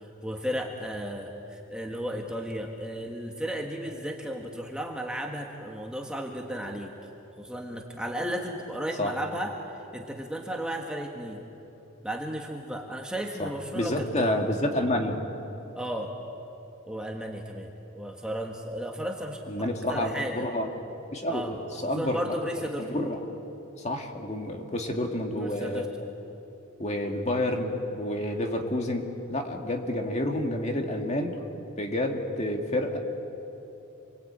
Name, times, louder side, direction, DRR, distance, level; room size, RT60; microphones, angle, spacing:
voice 1, 0.2-6.9 7.4-9.5 9.9-11.4 12.0-14.3 15.7-16.1 16.9-20.5 21.3-23.0 25.3-25.9, equal, 5° right, 1 dB, 1.6 m, -34 dB
voice 2, 13.4-15.2 19.5-20.7 21.1-22.2 22.8-23.2 23.8-25.8 26.8-31.4 31.8-33.0, left 1 dB, 30° left, 3 dB, 2.1 m, -29 dB
28.5 x 22.0 x 8.8 m, 3.0 s
head